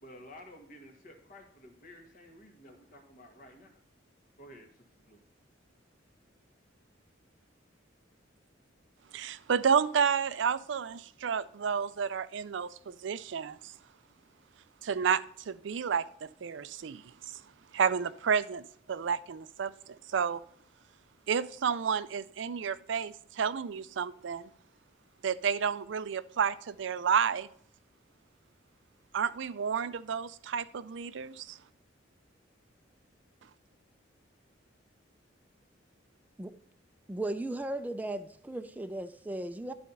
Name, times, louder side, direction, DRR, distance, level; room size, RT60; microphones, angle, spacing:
voice 1, 0.0-3.8 4.4-5.2, left 1 dB, 45° left, 1.6 m, -52 dB
voice 2, 9.1-13.7 14.8-17.4 17.7-20.4 21.3-24.5 25.2-27.5 29.1-31.6, right 7 dB, 65° right, 0.4 m, -31 dB
voice 3, 37.1-38.2 38.5-39.7, right 1 dB, 10° right, 0.4 m, -36 dB
11.5 x 4.3 x 5.4 m
head